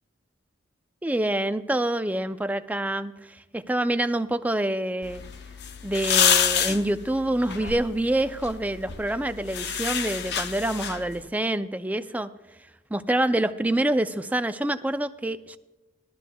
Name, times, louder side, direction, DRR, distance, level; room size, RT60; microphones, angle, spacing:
voice 1, 1.0-5.2 5.8-12.3 12.9-15.6, right 1 dB, 10° right, 10 dB, 0.4 m, -26 dB
sound 1, 5.0-11.2, left 8 dB, 60° left, 0.7 m, -28 dB
18.5 x 13.0 x 2.3 m, 1.1 s
head